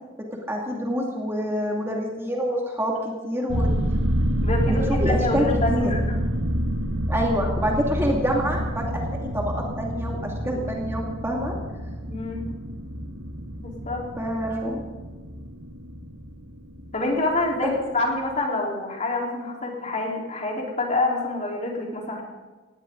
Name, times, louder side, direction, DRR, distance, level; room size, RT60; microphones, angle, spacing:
voice 1, 0.5-3.7 4.7-5.9 7.1-11.6 14.2-14.8 17.6-17.7, equal, 15° right, -1 dB, 2.3 m, -27 dB
sound 1, 3.5-18.0 18.3-18.4, equal, 65° right, 1.8 m, -28 dB
voice 2, 4.4-6.2 12.1-12.5 13.6-14.1 16.9-22.2, left 2 dB, 35° left, -1 dB, 4.0 m, -27 dB
19.0 x 18.0 x 3.9 m, 1.3 s
head